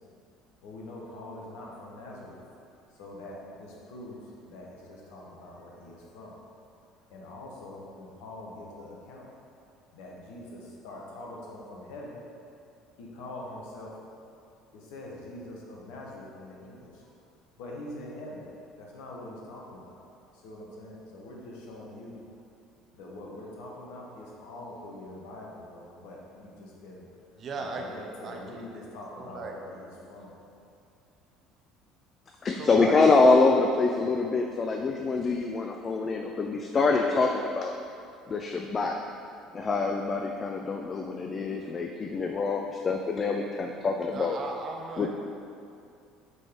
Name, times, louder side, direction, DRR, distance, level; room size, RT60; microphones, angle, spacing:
voice 1, 0.6-2.4 2.9-6.4 7.1-9.3 9.9-12.2 13.0-13.9 14.7-17.1 17.6-18.5 18.7-20.0 20.3-22.2 22.9-27.0 27.6-30.3, left 1 dB, 60° left, -2 dB, 1.0 m, -44 dB
voice 2, 27.4-27.9 28.2-28.9 29.2-29.5 32.5-33.2 44.1-45.1, right 3 dB, 40° right, 1 dB, 0.8 m, -37 dB
voice 3, 32.4-37.7 38.3-39.0 39.5-44.4 45.0-45.1, left 3 dB, 30° left, 3 dB, 0.4 m, -25 dB
8.0 x 3.9 x 3.5 m, 2.5 s
figure-of-eight pair, 60°, 0 cm